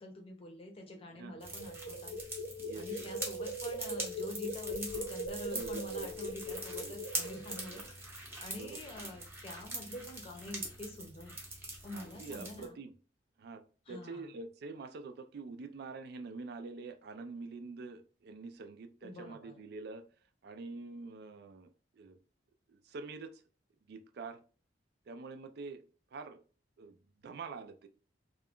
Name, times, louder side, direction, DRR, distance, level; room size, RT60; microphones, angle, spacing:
voice 1, 0.0-2.2 2.7-7.8 8.4-11.4 11.8-12.8 13.9-14.3 19.0-19.5, left 1 dB, 30° left, 3 dB, 0.6 m, -46 dB
sound 1, 1.3-7.8, equal, 75° left, 0.7 m, -41 dB
sound 2, 1.4-12.7, right 1 dB, 15° right, 0.7 m, -43 dB
voice 2, 2.6-3.1 5.5-6.1 6.5-7.0 7.6-7.8 8.4-9.2 11.9-12.9 13.4-13.6 13.9-20.1 20.4-22.2 22.7-23.4 23.9-24.4 25.1-25.8 26.1-26.4 26.8-27.0 27.2-27.9, right 3 dB, 60° right, 9 dB, 0.3 m, -46 dB
2.4 x 2.2 x 3.5 m, 0.39 s
head